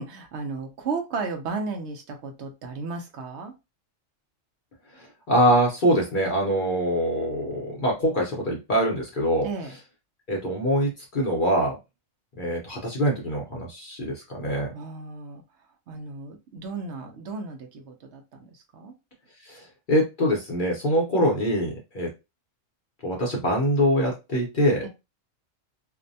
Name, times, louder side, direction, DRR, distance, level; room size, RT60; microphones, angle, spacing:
voice 1, 0.0-3.5 9.4-9.8 14.7-15.4 15.9-18.9 24.8-24.9, right 4 dB, 65° right, 5 dB, 0.8 m, -34 dB
voice 2, 4.9-9.5 10.3-11.8 12.4-14.7 19.4-22.1 23.0-24.9, equal, 50° left, -1 dB, 0.7 m, -24 dB
2.6 x 2.1 x 2.6 m, 0.26 s
omnidirectional pair, 1.3 m